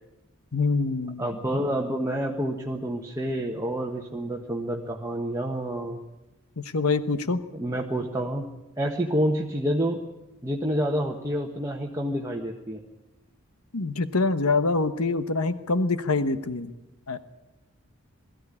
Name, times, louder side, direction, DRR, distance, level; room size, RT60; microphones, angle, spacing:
voice 1, 0.5-1.2 6.6-7.4 13.7-16.7 17.1-17.2, left 3 dB, 90° left, 11 dB, 1.2 m, -25 dB
voice 2, 1.2-6.0 7.5-8.5 8.8-10.0 10.4-12.8, equal, 15° right, 0 dB, 1.4 m, -28 dB
21.5 x 14.5 x 9.9 m, 1.0 s
head